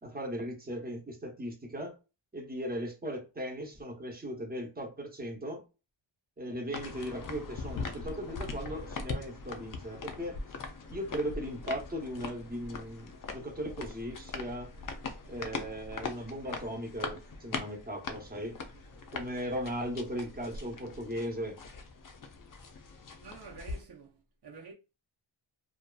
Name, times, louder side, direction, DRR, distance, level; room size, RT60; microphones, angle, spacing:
voice 1, 0.0-2.0 2.3-5.6 6.4-10.4 10.9-14.7 15.3-18.6 19.1-21.6, equal, 20° right, 0.8 m, -37 dB
sound 1, 6.7-23.8, left 4 dB, 45° left, 0.5 m, -41 dB
voice 2, 23.2-24.7, right 4 dB, 55° right, 0.7 m, -49 dB
2.6 x 2.4 x 2.2 m
wide cardioid pair, 135°, 47 cm